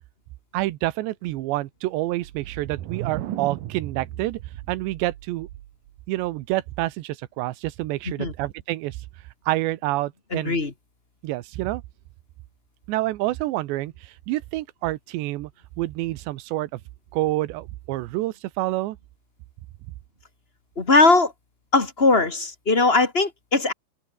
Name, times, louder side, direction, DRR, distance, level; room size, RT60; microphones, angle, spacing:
voice 1, 0.5-4.4 4.7-5.5 6.1-9.0 9.5-10.6 11.2-11.8 12.9-15.5 15.8-16.8 17.1-19.0, right 17 dB, 80° right, 3.1 m, -28 dB
sound 1, 2.2-5.9, right 13 dB, 65° right, 2.4 m, -36 dB
voice 2, 10.3-10.7 20.7-21.3 21.7-23.7, left 3 dB, 35° left, 0.9 m, -19 dB
omnidirectional pair, 5.2 m